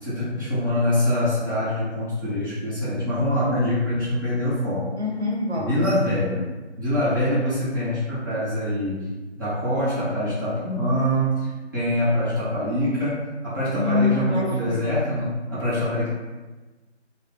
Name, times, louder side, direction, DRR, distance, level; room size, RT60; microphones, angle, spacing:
voice 1, 0.0-4.9 5.5-6.5 6.8-9.0 9.4-16.1, left 1 dB, 20° right, -15 dB, 1.1 m, -24 dB
voice 2, 5.0-5.8 13.7-14.8, left 3 dB, 70° right, -3 dB, 1.1 m, -25 dB
3.0 x 2.2 x 3.7 m, 1.2 s
figure-of-eight pair, 170°, 35 cm